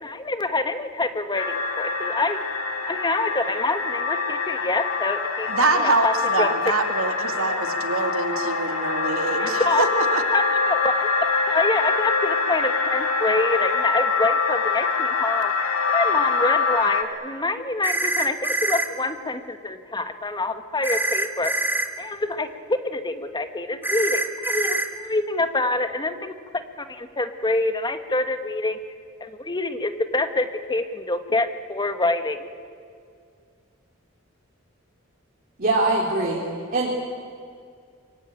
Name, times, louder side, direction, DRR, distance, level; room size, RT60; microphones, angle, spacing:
voice 1, 0.0-2.4 2.9-5.5 5.8-6.1 6.4-6.5 9.4-9.8 10.3-15.5 15.9-21.5 22.0-26.3 26.8-28.8 29.2-32.5, left 2 dB, 20° left, 9 dB, 1.3 m, -26 dB
sound 1, 1.3-17.0, left 4 dB, 85° left, 2.7 m, -24 dB
voice 2, 5.5-10.2, right 3 dB, 80° right, 6 dB, 2.5 m, -25 dB
sound 2, 17.8-18.9 20.8-21.9 23.8-24.9, right 1 dB, 10° right, 2.0 m, -24 dB
voice 3, 35.6-36.4 36.7-36.9, right 2 dB, 45° right, -3 dB, 3.4 m, -22 dB
25.0 x 23.0 x 9.0 m, 2.2 s
head